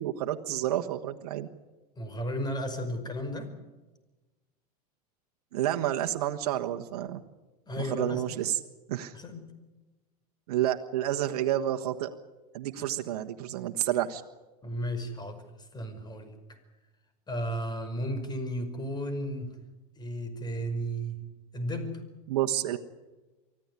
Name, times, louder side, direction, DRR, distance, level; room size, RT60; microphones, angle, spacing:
voice 1, 0.0-1.5 5.5-7.2 7.8-8.6 8.9-9.2 10.5-12.1 12.5-14.2 22.3-22.8, right 12 dB, 75° right, 6 dB, 1.4 m, -29 dB
voice 2, 2.0-3.5 7.7-8.2 9.1-9.4 12.8-12.9 14.6-15.4 15.7-16.6 17.3-19.5 20.0-21.2 21.5-22.0, equal, 20° left, 9 dB, 5.4 m, -34 dB
24.0 x 15.0 x 9.7 m, 1.2 s
hypercardioid pair, 100°, 20 cm